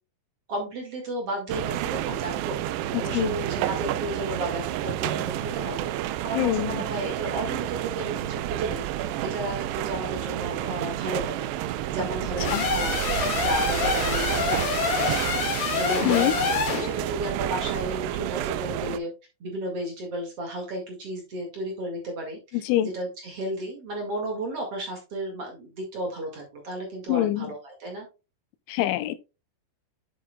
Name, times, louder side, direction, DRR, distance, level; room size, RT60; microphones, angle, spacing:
voice 1, 0.5-2.6 2.9-5.9 6.2-13.0 13.2-15.2 15.7-19.1 19.4-28.1, right 1 dB, 45° right, 2.1 m, -33 dB
sound 1, 1.5-19.0, right 12 dB, 85° right, 2.4 m, -30 dB
voice 2, 2.9-3.4 6.4-6.8 12.5-12.6 16.0-16.3 22.7-22.9 27.1-27.5 28.7-29.2, left 14 dB, 85° left, 3.0 m, -24 dB
sound 2, 12.4-16.9, left 5 dB, 50° left, 2.4 m, -26 dB
9.5 x 7.0 x 2.3 m
omnidirectional pair, 5.4 m